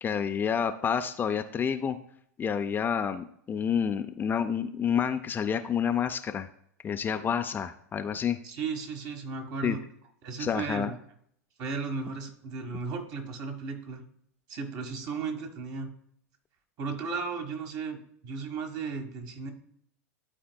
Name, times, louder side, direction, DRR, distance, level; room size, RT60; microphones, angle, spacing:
voice 1, 0.0-2.0 2.4-6.5 6.8-8.4 9.6-9.8 10.4-10.9, left 7 dB, 25° left, 8 dB, 0.4 m, -29 dB
voice 2, 8.4-9.8 10.2-10.9 11.6-14.0 14.5-15.9 16.8-19.5, right 5 dB, 45° right, 4 dB, 1.4 m, -35 dB
12.0 x 4.3 x 2.2 m, 0.66 s
hypercardioid pair, 100°, 9 cm